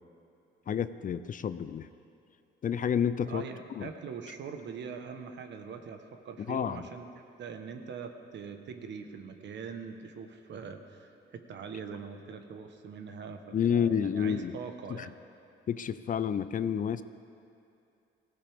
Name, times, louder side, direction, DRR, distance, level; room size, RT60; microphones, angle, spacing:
voice 1, 0.7-1.9 2.6-3.4 3.8-3.9 6.5-6.8 13.5-14.6 14.9-15.1 15.7-17.0, left 8 dB, 45° left, 13 dB, 0.5 m, -29 dB
voice 2, 3.3-15.1, right 6 dB, 65° right, 6 dB, 1.2 m, -43 dB
18.5 x 15.5 x 3.6 m, 2.6 s
cardioid pair, 90°, 20 cm